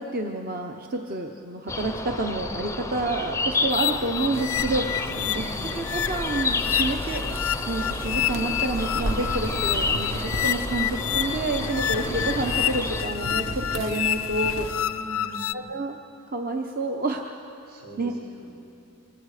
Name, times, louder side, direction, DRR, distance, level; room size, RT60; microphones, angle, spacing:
voice 1, 0.0-4.9 5.4-5.5 5.7-7.4 7.7-14.7 15.5-16.0 16.3-17.2 18.0-18.1, right 2 dB, 40° right, 3 dB, 0.8 m, -29 dB
sound 1, 1.7-13.0, left 3 dB, 15° left, 0.5 m, -31 dB
sound 2, 3.7-15.5, left 12 dB, 75° left, 0.5 m, -29 dB
sound 3, 4.3-14.8, right 1 dB, 65° right, 1.0 m, -34 dB
voice 2, 5.1-5.7 14.8-15.8 17.7-18.5, equal, 80° right, -3 dB, 6.8 m, -42 dB
25.0 x 22.0 x 5.0 m, 2.7 s
head